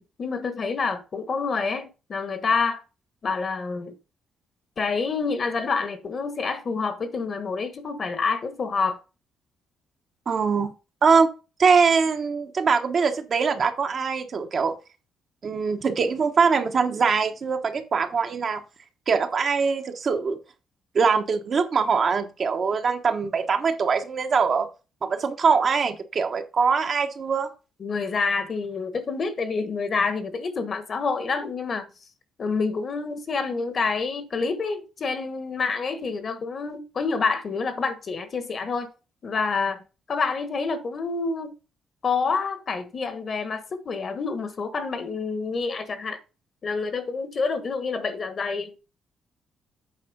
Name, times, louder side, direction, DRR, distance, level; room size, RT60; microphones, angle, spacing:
voice 1, 0.0-2.8 3.2-4.0 4.8-9.0 27.8-31.8 32.4-38.9 39.2-39.8 40.1-41.5 42.0-46.2 46.6-48.8, left 4 dB, 45° left, 1.4 m, -27 dB
voice 2, 10.3-10.7 11.0-11.3 11.6-14.7 15.4-18.6 19.1-20.4 20.9-24.7 25.0-27.5, right 5 dB, 50° right, 1.2 m, -22 dB
8.4 x 4.3 x 5.4 m
cardioid pair, 90°, 0 cm